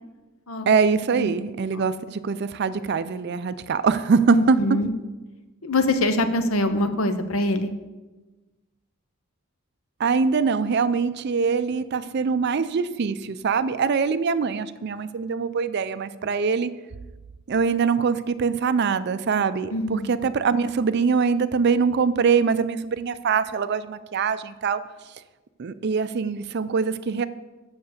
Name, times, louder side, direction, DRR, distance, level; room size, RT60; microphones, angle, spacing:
voice 1, 0.7-4.6 10.0-16.7 17.5-24.8 25.6-27.2, right 5 dB, 50° right, 13 dB, 0.4 m, -23 dB
voice 2, 4.3-4.9 5.6-7.7 19.7-20.2, left 1 dB, 75° left, 9 dB, 0.8 m, -24 dB
7.1 x 6.5 x 6.6 m, 1.2 s
head